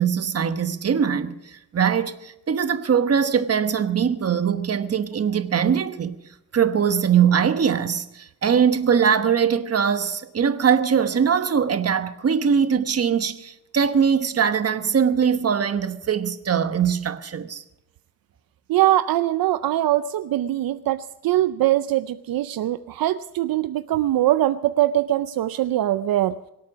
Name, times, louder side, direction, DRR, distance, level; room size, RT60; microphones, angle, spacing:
voice 1, 0.0-6.2 6.5-17.6, right 7 dB, 45° right, 1.1 m, -21 dB
voice 2, 18.7-26.4, right 14 dB, 75° right, 0.5 m, -22 dB
24.5 x 8.5 x 6.1 m
cardioid pair, 115°, 35 cm